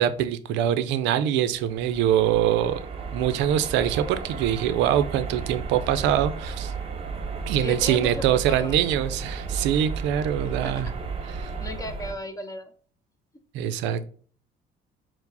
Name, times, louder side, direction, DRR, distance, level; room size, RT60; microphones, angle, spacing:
voice 1, 0.0-2.9 3.1-6.7 7.5-10.9 11.4-11.5 13.5-14.1, right 10 dB, 85° right, 12 dB, 0.4 m, -24 dB
sound 1, 1.5-12.1, right 5 dB, 30° right, 0.7 m, -34 dB
voice 2, 7.6-9.0 10.4-10.7 11.6-12.7, left 1 dB, 20° left, 7 dB, 0.5 m, -36 dB
4.6 x 2.0 x 3.9 m, 0.43 s
cardioid pair, 120°, 18 cm